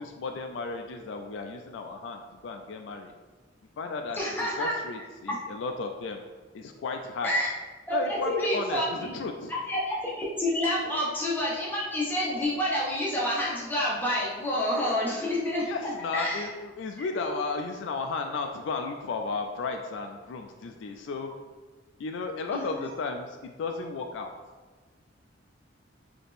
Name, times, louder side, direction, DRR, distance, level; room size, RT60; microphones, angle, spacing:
voice 1, 0.0-3.2 3.8-4.2 4.6-6.2 6.5-7.3 7.9-9.5 15.6-21.3 22.0-24.3, left 4 dB, 65° left, 4 dB, 0.3 m, -34 dB
voice 2, 4.2-4.7 5.3-5.4 7.2-7.5 7.9-9.1 9.5-15.6 16.1-16.5 22.5-22.6, left 1 dB, 10° left, -6 dB, 0.9 m, -28 dB
4.1 x 2.8 x 3.4 m, 1.3 s
head